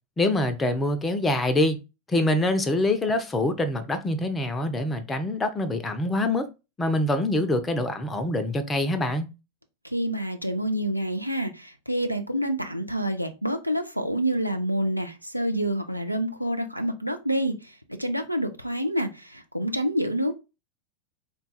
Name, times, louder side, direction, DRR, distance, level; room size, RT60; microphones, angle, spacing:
voice 1, 0.2-1.8 2.1-6.5 6.8-9.3, left 1 dB, 15° left, 0.5 m, -25 dB
voice 2, 9.8-20.4, right 1 dB, 90° right, 0.5 m, -28 dB
3.8 x 2.3 x 3.9 m
figure-of-eight pair, 90°, 0 cm